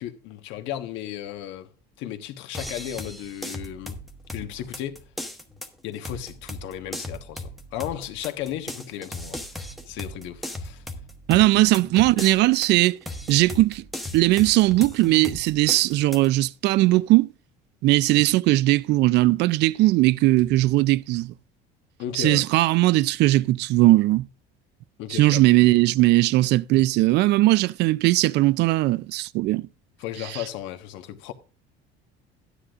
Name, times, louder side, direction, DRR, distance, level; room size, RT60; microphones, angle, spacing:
voice 1, 0.0-1.7 2.0-4.0 4.3-5.0 5.8-10.8 22.0-22.5 25.0-25.4 30.0-31.3, left 11 dB, 70° left, 1.3 m, -35 dB
sound 1, 2.5-16.3, left 1 dB, ahead, 1.0 m, -37 dB
voice 2, 11.3-13.0 13.3-13.8 14.1-17.3 17.8-21.3 22.1-24.3 25.1-29.7, right 18 dB, 60° right, 0.4 m, -19 dB
13.0 x 10.0 x 2.5 m
cardioid pair, 135°, 20 cm